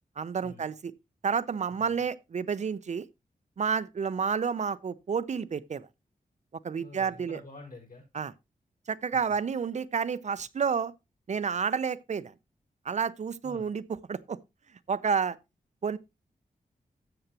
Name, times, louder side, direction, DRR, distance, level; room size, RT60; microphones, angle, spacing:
voice 1, 0.2-0.9 1.2-3.1 3.6-5.9 6.6-7.4 8.1-8.3 8.9-10.9 11.3-12.3 12.9-13.8 14.1-14.4 14.9-15.4 15.8-16.0, right 6 dB, 50° right, 0.5 m, -30 dB
voice 2, 6.8-8.0 13.4-13.7, left 3 dB, 70° left, 5.0 m, -48 dB
13.5 x 7.9 x 2.8 m
wide cardioid pair, 155°, 15 cm